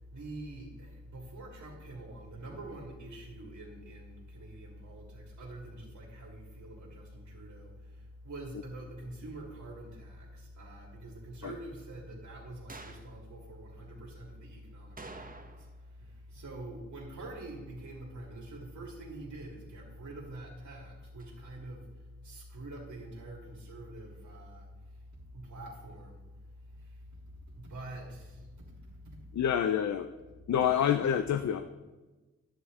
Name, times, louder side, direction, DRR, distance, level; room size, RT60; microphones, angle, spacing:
voice 1, 0.0-26.2 26.6-29.2 30.6-30.7, right 1 dB, 75° right, -3 dB, 2.0 m, -46 dB
sound 1, 12.7-13.1 15.0-15.8 16.1-16.2 21.2-21.3, right 3 dB, 30° right, 1.2 m, -47 dB
voice 2, 29.4-30.1 30.5-31.6, left 9 dB, 70° left, 8 dB, 0.6 m, -27 dB
11.0 x 8.7 x 3.7 m, 1.2 s
cardioid pair, 45°, 29 cm